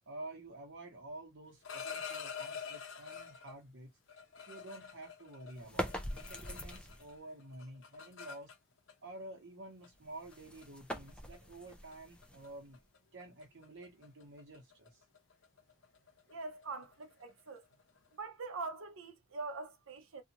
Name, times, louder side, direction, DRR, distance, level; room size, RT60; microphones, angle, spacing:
voice 1, 0.1-3.9 4.5-8.5 9.0-12.8 13.1-15.0, right 2 dB, 65° right, 0.9 m, -50 dB
sound 1, 1.4-3.6 4.1-7.1 7.4-8.9 9.8-10.0 10.3-10.6 11.1-11.4 11.7-11.9 12.2-12.5 12.7-18.1, left 6 dB, 70° left, 0.8 m, -47 dB
sound 2, 5.6-7.2 9.9-12.9, equal, 5° left, 0.5 m, -43 dB
voice 2, 16.3-17.6 18.2-20.2, right 3 dB, 90° right, 0.6 m, -43 dB
2.7 x 2.4 x 2.8 m
head